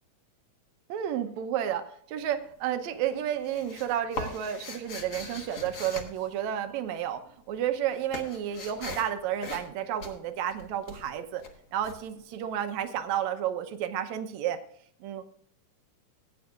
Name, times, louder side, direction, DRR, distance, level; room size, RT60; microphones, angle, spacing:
voice 1, 0.9-11.4 11.7-14.6 15.0-15.3, right 10 dB, 70° right, 8 dB, 1.8 m, -31 dB
sound 1, 2.2-2.7 3.0-7.1 7.3-12.9, left 3 dB, 75° left, 0.9 m, -41 dB
17.5 x 9.6 x 2.4 m, 0.62 s
omnidirectional pair, 4.1 m